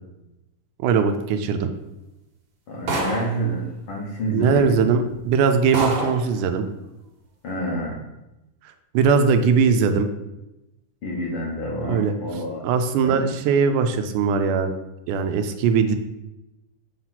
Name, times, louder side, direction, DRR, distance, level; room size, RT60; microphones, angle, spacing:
voice 1, 0.8-1.7 4.3-6.7 8.9-10.1 11.8-12.1 12.6-14.7 15.1-16.0, right 5 dB, 85° right, 7 dB, 2.1 m, -20 dB
voice 2, 2.7-4.8 7.4-8.0 11.0-12.6 13.0-13.2, equal, 65° left, -4 dB, 1.4 m, -28 dB
sound 1, 2.9-3.4 4.5-4.6 5.1-5.2 5.7-6.3, right 2 dB, 60° right, 2.2 m, -26 dB
6.7 x 3.0 x 5.7 m, 0.95 s
omnidirectional pair, 3.6 m